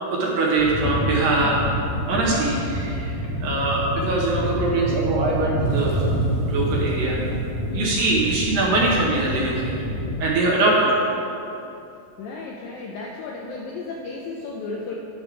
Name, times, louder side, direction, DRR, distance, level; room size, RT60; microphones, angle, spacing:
voice 1, 0.1-1.6 2.1-3.1 3.4-6.2 6.4-7.2 7.7-9.8 10.2-10.9, right 2 dB, 70° right, -4 dB, 2.4 m, -22 dB
sound 1, 0.6-10.3, equal, 65° left, 2.3 m, -27 dB
voice 2, 7.7-8.1 10.7-10.8 12.2-14.9, left 3 dB, 80° left, -1 dB, 2.0 m, -34 dB
11.5 x 6.5 x 4.6 m, 2.8 s
omnidirectional pair, 4.9 m